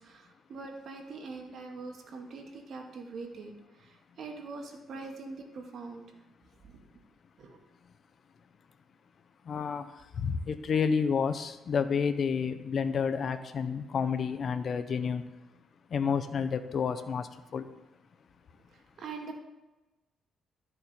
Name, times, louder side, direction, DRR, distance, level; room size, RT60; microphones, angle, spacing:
voice 1, 0.0-3.5 3.8-6.0 6.6-6.8 7.4-7.6 19.0-19.4, right 3 dB, 60° right, 3 dB, 1.8 m, -43 dB
voice 2, 9.5-9.8 10.2-15.2 15.9-17.3 17.5-17.7, left 6 dB, 55° left, 9 dB, 0.8 m, -29 dB
13.0 x 6.8 x 4.3 m, 1.1 s
cardioid pair, 90°, 0 cm